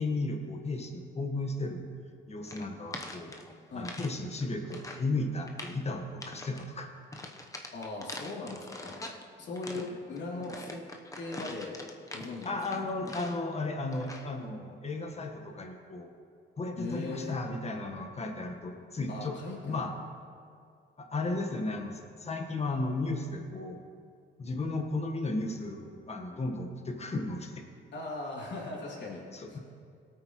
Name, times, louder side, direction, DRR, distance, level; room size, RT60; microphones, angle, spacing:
voice 1, 0.0-1.8 2.3-3.4 3.7-6.9 12.4-16.1 16.6-19.3 19.6-19.9 21.0-23.8 24.4-27.6 29.3-29.6, left 2 dB, 30° left, 3 dB, 1.5 m, -34 dB
sound 1, 2.5-4.1 4.4-5.1 5.4-5.8 6.2-6.6 7.1-9.2 9.6-13.5 13.9-14.3, left 2 dB, 15° left, 1.0 m, -44 dB
voice 2, 7.7-8.9 9.4-10.8 11.2-11.8 12.1-12.8 16.8-17.4 19.1-19.8 27.9-29.2 29.5-29.6, left 2 dB, 65° left, -4 dB, 3.3 m, -39 dB
18.5 x 8.8 x 3.2 m, 2.3 s
cardioid pair, 90°, 20 cm